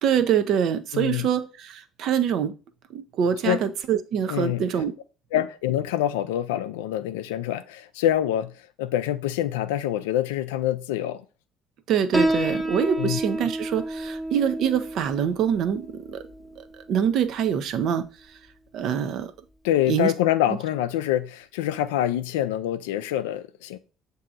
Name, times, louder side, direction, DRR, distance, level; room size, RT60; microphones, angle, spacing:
voice 1, 0.0-2.5 2.9-4.9 5.3-5.4 11.9-16.3 16.6-18.4 18.7-19.3 19.9-20.1 20.5-20.6, right 8 dB, 60° right, 0.5 m, -25 dB
voice 2, 0.9-1.3 3.4-3.6 4.3-4.6 5.3-8.5 8.8-11.2 13.0-13.2 19.6-23.8, left 12 dB, 80° left, 0.4 m, -25 dB
Piano, 12.1-19.2, right 1 dB, 5° right, 0.6 m, -31 dB
7.5 x 2.7 x 2.5 m
hypercardioid pair, 60°, 0 cm